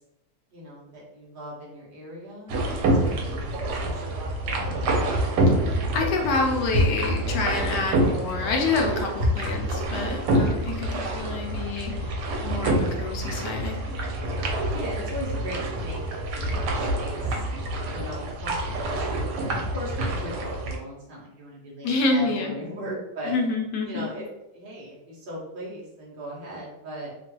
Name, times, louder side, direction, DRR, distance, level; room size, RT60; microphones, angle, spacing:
voice 1, 0.5-4.9 14.7-17.4 17.9-23.3 23.8-24.3 24.5-27.1, equal, 90° right, -5 dB, 0.4 m, -38 dB
sound 1, 2.5-20.8, right 1 dB, 70° right, 1.1 m, -26 dB
voice 2, 5.9-14.0 21.8-22.5 23.3-24.1, left 3 dB, 75° left, 1 dB, 1.1 m, -27 dB
3.0 x 2.3 x 2.9 m, 0.89 s
omnidirectional pair, 2.0 m